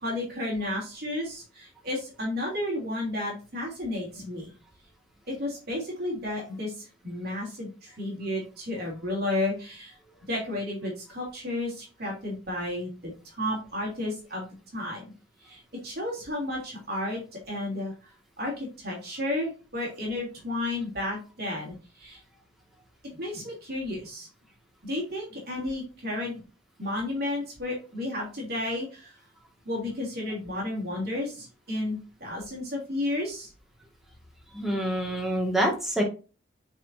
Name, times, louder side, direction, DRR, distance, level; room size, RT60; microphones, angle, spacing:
voice 1, 0.0-4.5 5.3-9.9 10.3-14.5 14.7-15.0 15.4-17.2 17.5-17.9 18.4-22.2 23.0-24.3 24.8-26.4 26.8-29.1 29.6-33.5, left 1 dB, 55° right, -2 dB, 3.0 m, -32 dB
voice 2, 34.5-36.0, right 1 dB, ahead, -1 dB, 1.9 m, -26 dB
9.1 x 4.5 x 2.7 m, 0.33 s
head